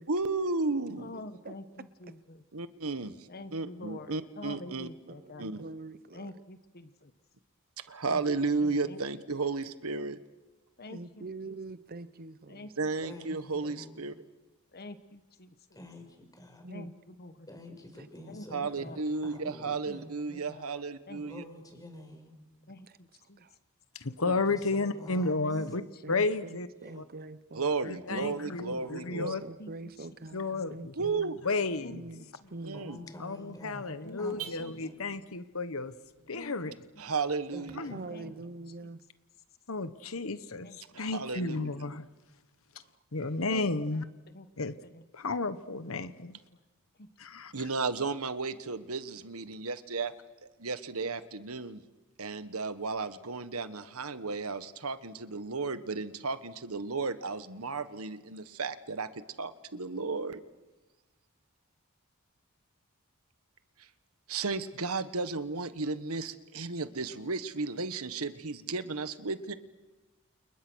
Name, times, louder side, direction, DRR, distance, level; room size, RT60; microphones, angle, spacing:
voice 1, 0.1-1.1 2.5-3.2 3.5-4.9 5.4-5.6 7.9-10.2 12.8-14.1 18.5-21.4 24.2-24.3 27.5-29.4 31.0-31.4 32.6-33.0 37.0-37.9 40.9-41.7 47.5-50.1 50.6-51.8 52.2-60.4 64.3-69.5, right 4 dB, 90° right, 1.5 m, -34 dB
voice 2, 1.0-2.4 3.3-5.6 6.1-7.1 8.1-8.2 8.8-9.0 10.8-11.5 12.5-12.7 14.7-15.5 16.6-17.5 18.3-19.0 19.8-20.0 20.3-20.7 21.1-21.2 22.7-23.5 25.4-26.2 28.0-28.5 29.6-30.1 31.8-32.5 34.0-34.8 36.3-36.8 37.0-37.1 38.0-38.3 40.6-41.2 43.4-43.8 44.3-44.5 44.8-45.1 45.9-46.1 46.5-46.6 47.0-47.1, left 2 dB, 45° left, 1.3 m, -47 dB
voice 3, 5.1-6.3 8.6-8.9 10.9-12.7 16.6-16.9 23.4-23.6 25.7-27.7 29.2-31.4 31.9-32.8 37.9-39.0 42.8-42.9, right 2 dB, 45° right, 0.8 m, -44 dB
voice 4, 13.0-14.0 15.8-16.7 17.5-20.1 21.2-22.4 24.5-25.6 26.8-27.0 28.1-29.2 32.7-35.0 37.5-38.4, left 1 dB, 15° left, 5.7 m, -48 dB
voice 5, 23.9-25.8 26.1-26.7 27.0-27.1 27.8-29.4 30.3-30.9 31.4-32.0 33.2-35.9 36.3-36.7 37.7-38.0 39.7-42.1 43.1-44.0 44.6-44.7 45.1-46.4 47.2-47.7, left 3 dB, 70° left, 1.2 m, -32 dB
Car / Alarm, 28.6-37.7, right 9 dB, 75° right, 3.5 m, -53 dB
30.0 x 29.0 x 6.4 m
head